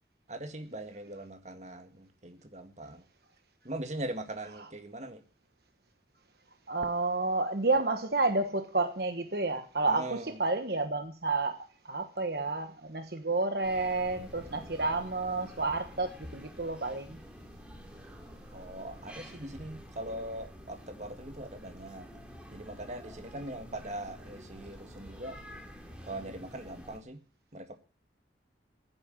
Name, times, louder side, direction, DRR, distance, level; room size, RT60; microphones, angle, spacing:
voice 1, 0.3-3.0 3.6-5.2 9.8-10.4 18.5-22.1 22.5-25.4 26.1-27.2 27.5-27.8, right 1 dB, 40° right, 7 dB, 1.9 m, -41 dB
voice 2, 6.7-17.2, right 3 dB, 55° right, 7 dB, 1.3 m, -30 dB
sound 1, 13.6-27.0, equal, 5° right, 2.9 m, -49 dB
15.0 x 9.7 x 9.0 m, 0.39 s
head